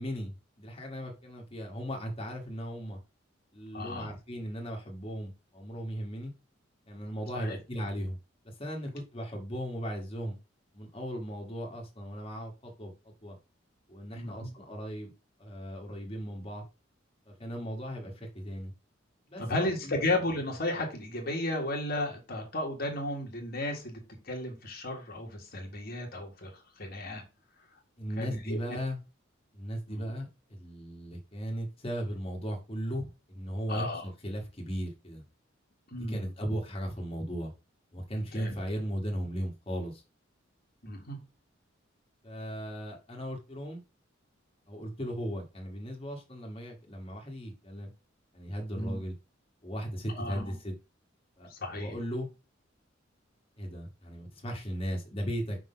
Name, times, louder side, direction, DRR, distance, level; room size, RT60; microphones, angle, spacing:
voice 1, 0.0-3.0 3.5-6.3 6.9-8.1 8.4-10.4 10.7-12.9 13.2-13.3 13.9-15.1 15.4-16.6 17.3-18.7 19.3-20.0 28.0-29.0 29.5-35.2 35.9-37.5 37.9-40.0 42.2-43.8 44.7-47.9 48.3-49.1 49.6-50.7 51.4-51.5 51.7-52.3 53.6-55.6, equal, 30° left, 0 dB, 1.7 m, -37 dB
voice 2, 3.7-4.1 7.3-7.6 14.2-14.5 19.4-26.5 26.8-27.2 28.2-28.6 29.9-30.1 33.7-34.0 35.9-36.3 38.3-38.6 40.8-41.2 48.7-49.0 50.1-50.5 51.5-51.9, left 1 dB, 50° left, 1 dB, 1.7 m, -34 dB
5.3 x 3.9 x 5.6 m, 0.28 s
head